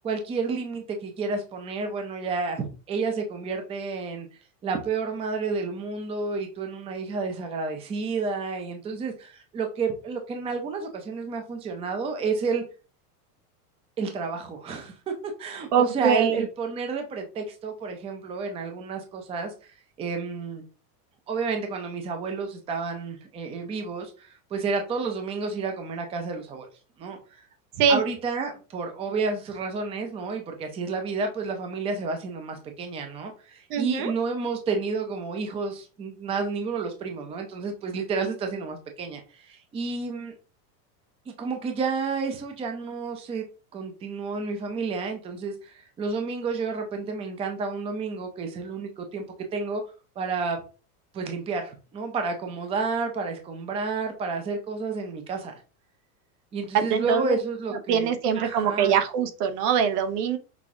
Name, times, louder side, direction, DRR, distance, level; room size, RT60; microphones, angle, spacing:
voice 1, 0.0-4.3 4.6-12.6 14.0-15.1 15.4-19.5 20.0-20.6 21.3-26.7 27.0-27.2 27.9-40.3 41.3-43.4 43.7-49.2 49.5-49.8 50.2-50.6 51.1-55.6 56.5-58.9, right 4 dB, 15° right, 5 dB, 0.5 m, -30 dB
voice 2, 15.7-16.4 27.8-28.0 33.7-34.1 56.7-57.4 57.7-60.4, right 7 dB, 80° right, 8 dB, 1.0 m, -23 dB
5.9 x 2.4 x 3.6 m, 0.35 s
supercardioid pair, 145°, 47 cm